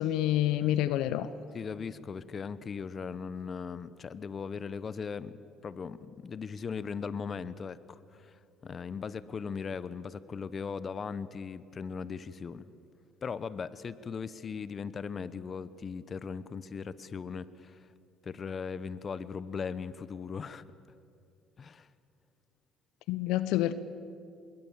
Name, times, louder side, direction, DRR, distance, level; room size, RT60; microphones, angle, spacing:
voice 1, 0.0-1.3 23.1-23.7, left 13 dB, 75° left, 14 dB, 0.8 m, -28 dB
voice 2, 1.5-5.3 5.6-12.6 13.2-17.8 18.2-20.6 21.6-21.9, left 6 dB, 40° left, 16 dB, 1.1 m, -38 dB
26.5 x 21.5 x 7.5 m, 2.6 s
hypercardioid pair, 65°, 0 cm